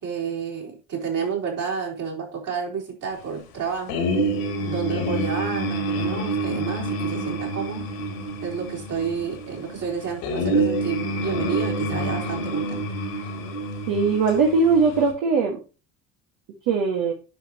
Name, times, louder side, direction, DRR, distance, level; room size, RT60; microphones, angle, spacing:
voice 1, 0.0-4.0 4.6-7.8 8.4-12.9, right 6 dB, 55° right, -1 dB, 4.3 m, -30 dB
sound 1, 3.9-15.1, right 1 dB, 75° left, 2.5 m, -27 dB
voice 2, 13.9-15.6 16.7-17.1, right 4 dB, 70° right, -1 dB, 1.9 m, -20 dB
9.4 x 5.7 x 3.0 m, 0.32 s
hypercardioid pair, 75°, 38 cm